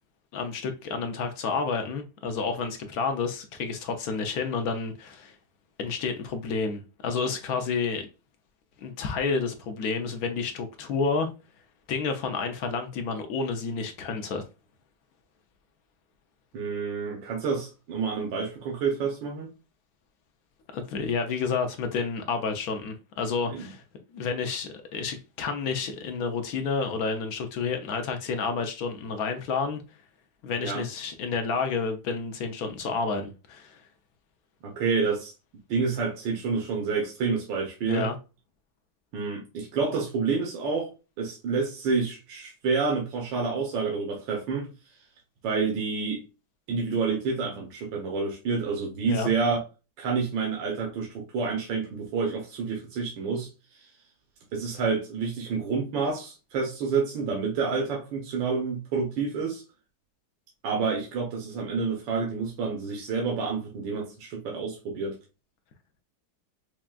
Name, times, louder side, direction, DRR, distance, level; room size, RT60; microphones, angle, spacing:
voice 1, 0.3-5.3 5.8-8.0 8.8-11.3 11.9-14.4 20.7-23.8 24.1-29.8 30.4-33.8 37.8-38.2 49.0-49.3, left 5 dB, 65° left, 0.9 m, -30 dB
voice 2, 16.5-19.5 23.5-23.7 30.6-30.8 34.6-35.3 35.7-38.1 39.1-40.9 41.2-44.7 45.4-46.2 46.7-49.6 50.0-53.5 53.8-53.9 54.5-59.6 60.6-65.2, right 5 dB, 80° right, 1.6 m, -28 dB
5.9 x 2.3 x 2.3 m
omnidirectional pair, 2.0 m